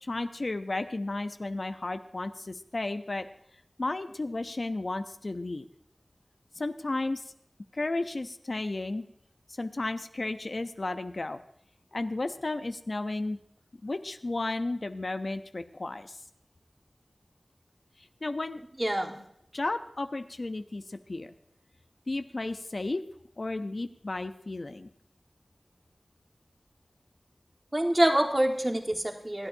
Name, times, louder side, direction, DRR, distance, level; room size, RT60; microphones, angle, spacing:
voice 1, 0.1-2.3 2.7-3.2 3.8-5.6 6.6-7.2 7.8-9.0 9.6-11.4 11.9-13.4 13.8-16.0 18.2-18.6 19.5-20.8 21.1-21.3 22.1-23.0 23.4-24.9, left 2 dB, 70° left, 9 dB, 0.6 m, -33 dB
voice 2, 18.7-19.2 27.7-29.5, right 1 dB, 30° right, 3 dB, 1.5 m, -26 dB
26.5 x 8.8 x 2.7 m, 0.73 s
wide cardioid pair, 45°, 0 cm